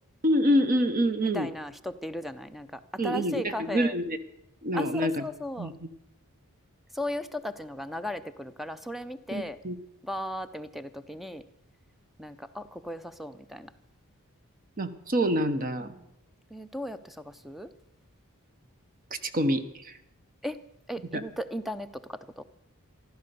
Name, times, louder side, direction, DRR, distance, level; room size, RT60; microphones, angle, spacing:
voice 1, 0.2-1.5 3.0-4.2 4.6-5.1 5.6-5.7 9.3-9.8 14.8-15.9 19.3-19.9, equal, 40° right, 11 dB, 0.9 m, -26 dB
voice 2, 1.3-4.0 4.7-5.7 6.9-9.6 10.0-11.4 12.2-13.7 15.8-16.1 16.5-17.7 20.4-20.6 20.9-22.4, left 1 dB, ahead, 12 dB, 0.5 m, -36 dB
15.0 x 12.0 x 6.8 m, 0.85 s
head